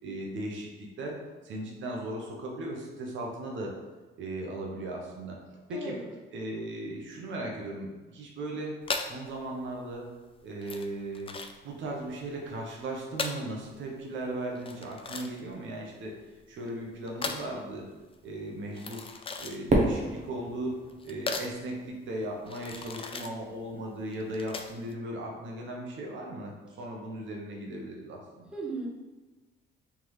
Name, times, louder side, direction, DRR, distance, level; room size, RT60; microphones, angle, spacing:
voice 1, 0.0-1.2 1.4-3.7 4.2-5.4 5.7-6.0 6.3-8.8 9.0-10.1 10.4-11.3 11.6-16.2 16.5-17.9 18.2-19.1 19.4-20.8 21.0-28.6, right 1 dB, 75° right, -1 dB, 0.9 m, -37 dB
voice 2, 5.7-6.1 28.5-29.0, right 2 dB, 5° right, -2 dB, 0.9 m, -37 dB
sound 1, 8.8-24.9, left 4 dB, 30° left, 0.4 m, -39 dB
Fireworks, 19.7-22.0, right 2 dB, 35° right, 0.9 m, -29 dB
3.7 x 3.4 x 3.1 m, 1.2 s
cardioid pair, 90°, 20 cm